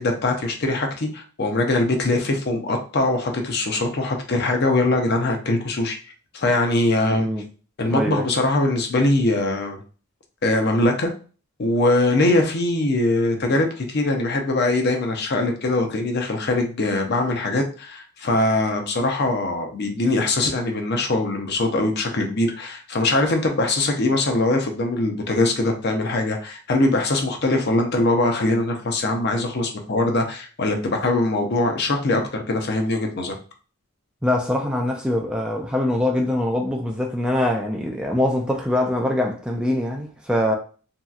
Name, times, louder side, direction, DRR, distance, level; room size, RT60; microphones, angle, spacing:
voice 1, 0.0-6.0 6.3-7.3 7.8-9.8 10.4-11.1 11.6-33.3, left 2 dB, 50° left, 0.6 m, -22 dB
voice 2, 7.0-7.5 7.9-8.3 13.3-13.5 34.2-40.5, left 1 dB, 5° right, 0.3 m, -23 dB
3.0 x 2.8 x 2.3 m
head